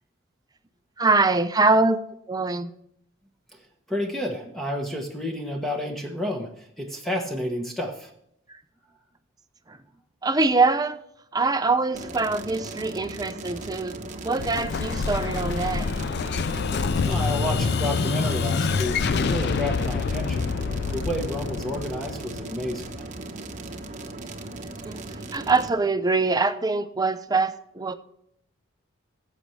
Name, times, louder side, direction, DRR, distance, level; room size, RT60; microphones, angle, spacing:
voice 1, 1.0-2.0 2.3-2.7 9.7-9.8 10.2-11.0 11.3-13.9 14.2-15.9 24.6-25.0 25.3-27.9, right 3 dB, 20° right, 10 dB, 0.6 m, -23 dB
voice 2, 3.9-8.1 17.0-20.5 20.9-23.1, left 1 dB, ahead, 1 dB, 1.1 m, -30 dB
sound 1, 11.9-25.7, right 2 dB, 35° right, 1.0 m, -37 dB
Explosion, 14.4-23.1, left 5 dB, 55° left, 0.4 m, -27 dB
16.0 x 7.6 x 3.3 m, 0.73 s
head